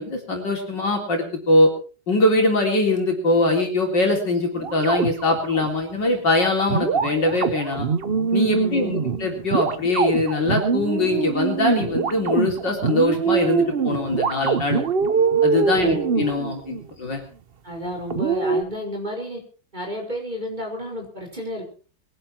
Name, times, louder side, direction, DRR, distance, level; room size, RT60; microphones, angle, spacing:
voice 1, 0.0-1.7 2.1-7.9 8.3-14.8 15.4-17.2, left 2 dB, 65° left, 2 dB, 4.3 m, -22 dB
sound 1, 4.5-5.7 6.7-16.9 18.1-18.6, right 6 dB, 45° right, 0.8 m, -23 dB
voice 2, 8.5-9.0 15.7-16.0 17.6-19.4 19.7-21.7, equal, 20° right, 1 dB, 5.3 m, -31 dB
22.0 x 11.5 x 4.4 m, 0.38 s
omnidirectional pair, 2.1 m